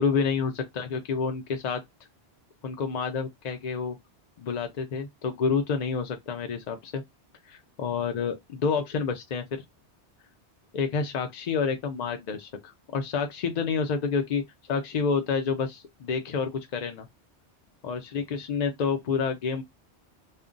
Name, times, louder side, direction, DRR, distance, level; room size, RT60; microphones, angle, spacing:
voice 1, 0.0-1.8 2.6-4.0 4.4-7.0 7.5-9.4 10.7-14.4 14.7-17.1 17.8-19.6, left 5 dB, 60° left, 0.4 m, -29 dB
2.5 x 2.1 x 3.6 m
omnidirectional pair, 1.1 m